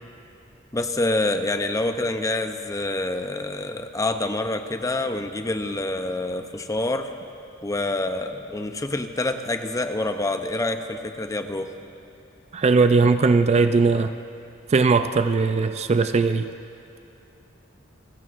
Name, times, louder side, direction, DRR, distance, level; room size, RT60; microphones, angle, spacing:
voice 1, 0.7-7.1 7.6-11.7, left 2 dB, 15° left, 7 dB, 0.6 m, -27 dB
voice 2, 12.5-14.1 14.7-16.5, right 4 dB, 30° right, 10 dB, 0.3 m, -19 dB
29.5 x 15.5 x 2.5 m, 2.7 s
head